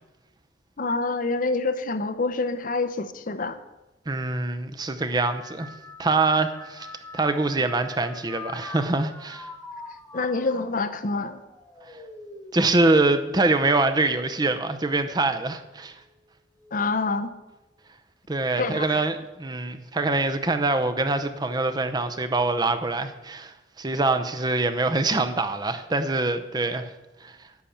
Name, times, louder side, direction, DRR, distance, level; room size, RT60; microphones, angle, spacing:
voice 1, 0.8-3.6 10.1-11.4 16.7-17.3 18.6-19.0, left 3 dB, 45° left, 11 dB, 0.7 m, -26 dB
voice 2, 4.1-5.7 6.0-6.9 7.1-9.5 12.5-15.9 18.3-26.9 27.2-27.4, right 2 dB, 20° right, 8 dB, 0.7 m, -24 dB
sound 1, 5.0-14.6 15.0-15.6 16.6-16.9, left 2 dB, 10° left, 1.0 m, -44 dB
10.5 x 5.8 x 8.5 m, 1.0 s
head